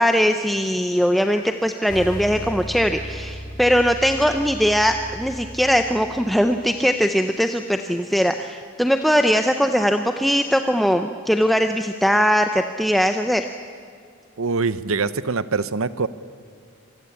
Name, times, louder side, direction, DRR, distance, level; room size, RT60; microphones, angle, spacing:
voice 1, 0.0-13.5, equal, ahead, 6 dB, 0.6 m, -20 dB
sound 1, 1.9-6.8, equal, 20° left, 2.2 m, -36 dB
voice 2, 14.4-16.1, right 4 dB, 70° right, 15 dB, 0.8 m, -23 dB
26.0 x 20.0 x 8.5 m, 2.2 s
head